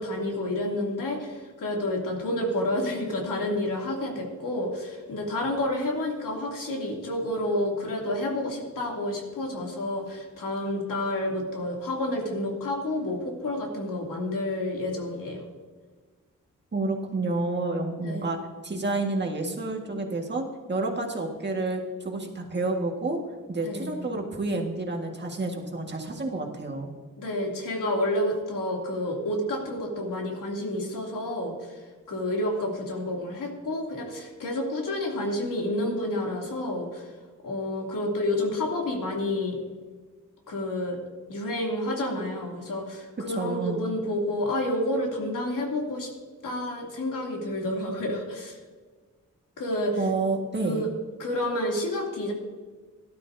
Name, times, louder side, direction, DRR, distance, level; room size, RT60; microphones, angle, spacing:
voice 1, 0.0-15.4 18.0-18.3 23.6-24.0 27.2-37.1 37.4-39.6 40.5-41.0 41.3-46.1 46.4-48.6 49.6-50.0 50.6-50.9 51.2-52.3, left 1 dB, 85° left, -1 dB, 2.9 m, -29 dB
voice 2, 16.7-18.4 18.6-23.2 23.5-26.9 43.3-43.8 50.0-50.8, right 2 dB, 35° right, 1 dB, 1.8 m, -29 dB
17.5 x 12.0 x 2.7 m, 1.4 s
wide cardioid pair, 135°, 32 cm